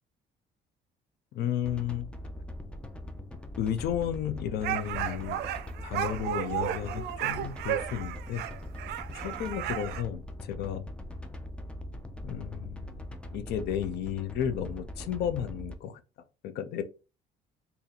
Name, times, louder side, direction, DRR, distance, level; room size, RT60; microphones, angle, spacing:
voice 1, 1.3-2.1 3.6-5.4 5.8-8.4 9.1-10.9 12.2-13.0 13.3-16.0 16.4-16.8, left 9 dB, 75° left, 0.5 m, -33 dB
sound 1, 1.6-15.7, left 1 dB, 5° left, 0.4 m, -41 dB
sound 2, 4.6-10.0, right 12 dB, 75° right, 0.4 m, -34 dB
2.7 x 2.7 x 4.0 m
cardioid pair, 110°, 17 cm